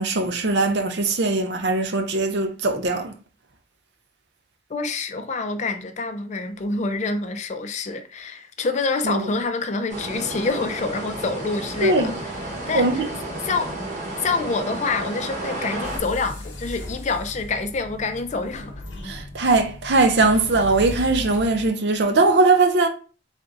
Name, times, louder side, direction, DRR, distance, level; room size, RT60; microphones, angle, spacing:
voice 1, 0.0-3.1 9.0-9.3 11.8-12.1 12.7-13.1 19.0-22.9, right 3 dB, 65° right, 0.6 m, -20 dB
voice 2, 4.7-12.1 12.7-12.9 13.5-13.7 14.2-18.7, left 3 dB, 40° left, 0.4 m, -26 dB
sound 1, 9.9-16.0, right 1 dB, 45° right, 1.0 m, -32 dB
sound 2, 15.8-21.7, left 1 dB, 75° left, 0.9 m, -36 dB
3.5 x 2.6 x 3.8 m
head